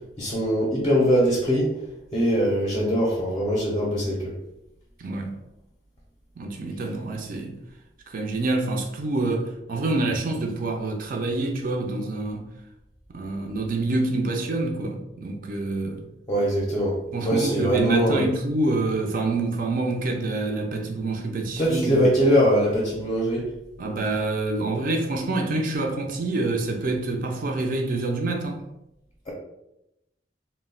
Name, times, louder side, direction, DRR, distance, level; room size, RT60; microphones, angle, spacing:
voice 1, 0.2-1.7 2.1-4.3 16.3-18.2 21.6-23.4, equal, 25° left, 0.5 m, -22 dB
voice 2, 5.0-5.3 6.4-7.5 8.1-12.4 13.1-16.0 17.1-22.0 23.8-28.6, right 2 dB, 50° right, 0.4 m, -27 dB
2.2 x 2.0 x 3.6 m
head